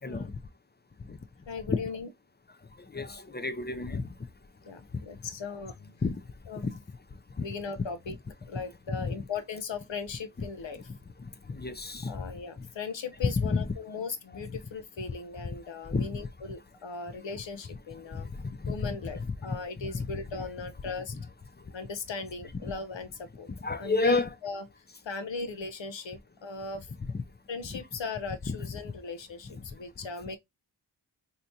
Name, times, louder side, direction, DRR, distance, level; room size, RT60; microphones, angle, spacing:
voice 1, 0.0-0.4 1.1-1.2 1.7-1.8 2.8-4.1 6.0-6.2 6.6-6.8 7.4-7.5 9.0-9.3 10.9-12.1 13.2-13.7 15.4-15.5 15.9-16.2 18.1-20.1 21.1-21.3 23.5-24.3 27.0-27.2 28.8-28.9 29.6-29.7, left 3 dB, 25° left, 0.4 m, -31 dB
voice 2, 1.5-2.1 4.7-5.9 6.5-6.7 7.4-8.1 8.5-10.8 12.1-18.3 18.7-21.2 21.7-23.5 23.8-24.6 25.0-26.9 27.5-30.4, left 4 dB, 90° left, 0.6 m, -38 dB
3.4 x 2.8 x 2.7 m
wide cardioid pair, 45°, 43 cm